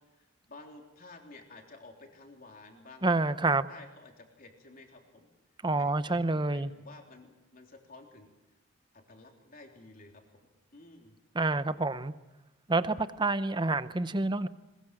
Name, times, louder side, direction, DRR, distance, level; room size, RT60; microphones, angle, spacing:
voice 1, 0.5-3.1 3.7-5.3 5.8-8.3 9.1-11.2, left 3 dB, 40° left, 2 dB, 3.6 m, -52 dB
voice 2, 3.0-3.7 5.6-6.7 11.3-12.1 12.7-14.5, right 3 dB, 20° right, 13 dB, 0.7 m, -28 dB
21.5 x 21.0 x 7.7 m, 1.0 s
head